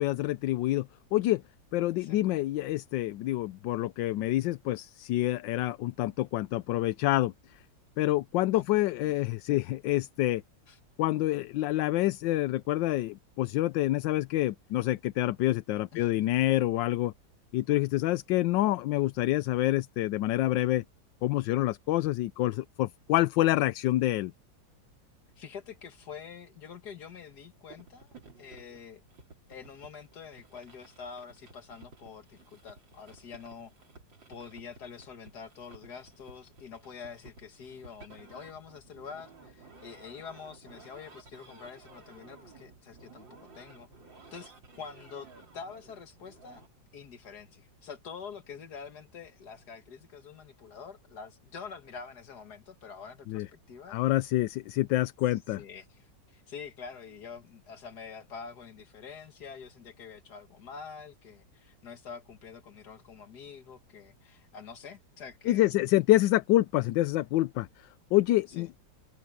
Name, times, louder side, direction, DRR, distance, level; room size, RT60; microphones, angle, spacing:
voice 1, 0.0-1.4 1.7-7.3 8.0-10.4 11.0-17.1 17.5-20.8 21.2-24.3 53.3-53.5 53.9-55.6 65.5-68.8, left 16 dB, 80° left, 1.3 m, -27 dB
voice 2, 25.4-29.0 29.5-33.7 34.3-43.9 44.3-45.3 45.5-46.6 46.9-54.0 55.3-65.8 68.6-68.7, left 6 dB, 60° left, 2.2 m, -46 dB
sound 1, 27.7-46.7, right 3 dB, 80° right, 4.3 m, -55 dB
omnidirectional pair, 2.0 m